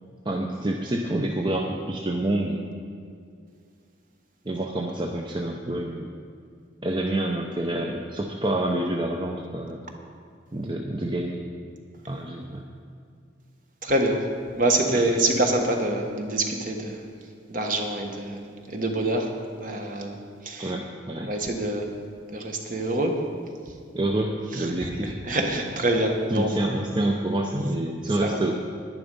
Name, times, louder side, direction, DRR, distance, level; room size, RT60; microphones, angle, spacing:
voice 1, 0.3-2.6 4.5-6.1 6.8-9.8 10.5-11.4 12.1-12.6 14.9-15.0 20.6-21.3 23.9-25.2 26.3-28.5, right 1 dB, 25° right, 1 dB, 0.6 m, -27 dB
voice 2, 13.8-14.2 14.6-17.0 17.5-19.3 19.6-20.2 20.4-20.7 21.2-21.9 22.3-23.1 24.5-26.5 28.2-28.4, right 1 dB, 45° right, 3 dB, 1.2 m, -26 dB
10.5 x 10.5 x 5.4 m, 2.3 s
head